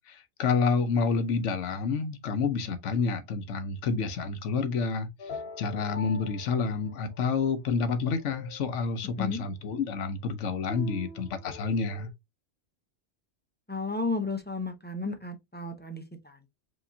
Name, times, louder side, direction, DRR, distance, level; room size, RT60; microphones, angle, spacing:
voice 1, 0.1-5.3 5.6-12.1, left 5 dB, 85° left, 1.1 m, -29 dB
sound 1, 5.2-7.4 7.9-9.0 10.7-12.1, left 3 dB, 65° left, 0.8 m, -44 dB
voice 2, 13.7-16.5, left 3 dB, 10° left, 0.5 m, -33 dB
5.0 x 2.9 x 2.6 m
omnidirectional pair, 1.2 m